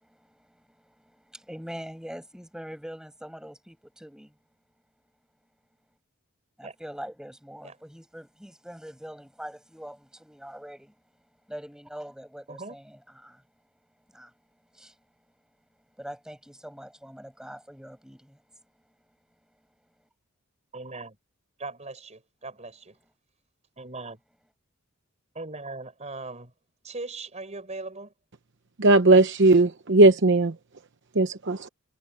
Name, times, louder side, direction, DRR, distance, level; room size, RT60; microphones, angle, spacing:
voice 1, 0.0-4.4 6.6-11.0 11.5-13.4 14.1-14.4 14.7-15.0 16.0-18.6, equal, 5° right, 7.7 m, -43 dB
voice 2, 20.7-21.2 21.6-23.0 23.8-24.2 25.3-26.5 26.8-28.1, right 3 dB, 35° right, 5.0 m, -39 dB
voice 3, 28.8-30.5 31.2-31.7, right 2 dB, 60° right, 0.9 m, -18 dB
head